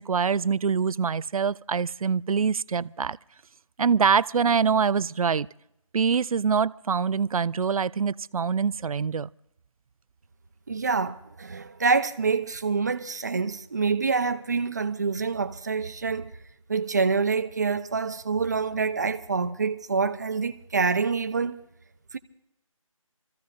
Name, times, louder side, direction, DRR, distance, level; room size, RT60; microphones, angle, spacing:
voice 1, 0.0-3.2 3.8-5.5 5.9-9.3, right 6 dB, 80° right, 0.4 m, -24 dB
voice 2, 10.7-16.3 16.7-21.6 22.1-22.2, right 4 dB, 30° right, 0.6 m, -26 dB
27.5 x 14.5 x 2.5 m
figure-of-eight pair, 165°, 18 cm